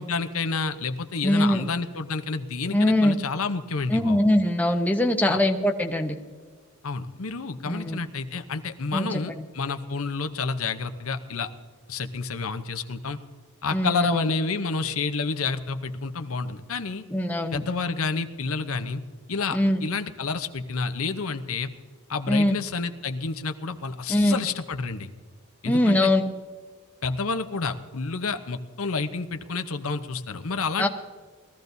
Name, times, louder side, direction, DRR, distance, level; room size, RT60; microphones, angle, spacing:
voice 1, 0.0-4.3 5.3-5.4 6.8-11.5 11.9-13.2 13.6-17.0 17.5-19.0 19.3-21.7 22.1-25.1 25.6-26.1 27.0-30.9, left 4 dB, 70° left, 8 dB, 0.8 m, -29 dB
voice 2, 1.2-1.6 2.7-3.2 3.9-6.2 7.7-8.0 8.9-9.4 13.7-14.3 17.1-17.6 19.5-19.8 22.3-22.6 24.1-24.5 25.7-26.2 30.8-30.9, left 1 dB, 5° left, 3 dB, 0.9 m, -22 dB
21.5 x 14.5 x 2.7 m, 1.5 s
head